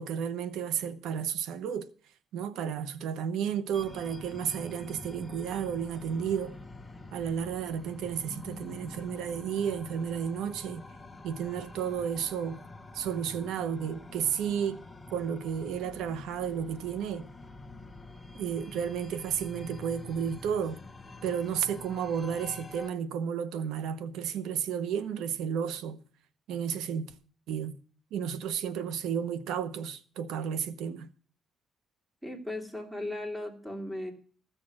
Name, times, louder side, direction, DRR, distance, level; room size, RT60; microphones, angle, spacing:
voice 1, 0.0-1.9 2.3-6.5 7.1-10.8 11.2-12.6 12.9-14.8 15.1-17.3 18.4-20.8 21.2-26.0 26.5-27.1 27.5-27.8 28.1-31.1, right 8 dB, 85° right, 1.0 m, -32 dB
sound 1, 3.7-22.9, left 2 dB, 15° left, 1.1 m, -47 dB
voice 2, 32.2-34.1, left 1 dB, 5° right, 2.8 m, -37 dB
14.5 x 6.8 x 7.4 m
cardioid pair, 140°, 0 cm